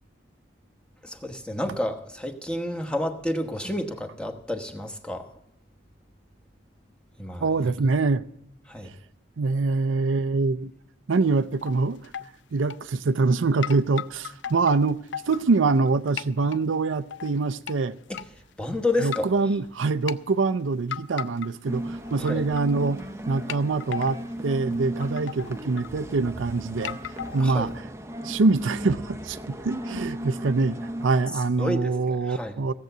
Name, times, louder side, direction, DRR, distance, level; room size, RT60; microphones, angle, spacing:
voice 1, 1.0-5.3 7.2-7.4 8.7-8.9 18.6-19.3 22.2-22.4 27.4-27.7 31.6-32.5, left 1 dB, 5° left, 1.1 m, -30 dB
voice 2, 7.4-8.2 9.4-10.7 11.1-12.1 12.5-15.0 15.3-18.0 18.7-18.8 19.0-27.8 28.2-32.7, right 3 dB, 85° right, 0.5 m, -24 dB
sound 1, 11.3-11.8 12.0-12.3 12.7-13.3 13.6-15.9 16.2-16.6 17.1-17.8 18.1-18.3 19.0-19.4 19.8-20.2 20.9-21.8 22.0-22.7 23.0-23.1 23.5-24.3 24.7-24.8 25.0-26.3 26.8-27.7, left 9 dB, 70° left, 0.5 m, -36 dB
sound 2, 21.7-31.1, right 1 dB, 15° right, 0.7 m, -36 dB
16.5 x 7.8 x 7.8 m
head